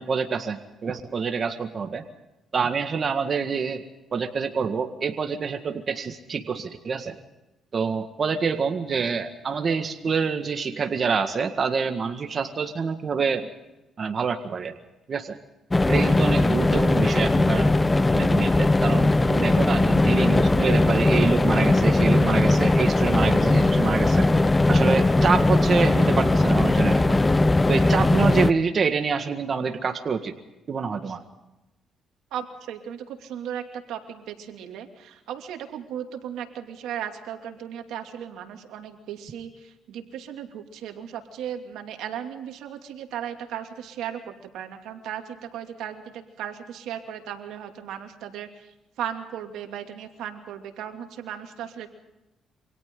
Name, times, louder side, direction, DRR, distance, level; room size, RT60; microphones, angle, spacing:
voice 1, 0.0-2.0 2.5-3.8 4.1-7.2 7.7-13.5 14.0-14.8 15.1-15.4 15.9-17.7 18.1-24.3 24.7-27.2 27.7-30.4 30.7-31.2, right 5 dB, 45° right, 6 dB, 1.8 m, -26 dB
sound 1, 15.7-28.5, left 2 dB, 20° left, 0.8 m, -19 dB
voice 2, 32.3-51.9, right 9 dB, 90° right, 5 dB, 2.6 m, -36 dB
28.5 x 25.0 x 3.9 m, 0.96 s
cardioid pair, 90°, 0 cm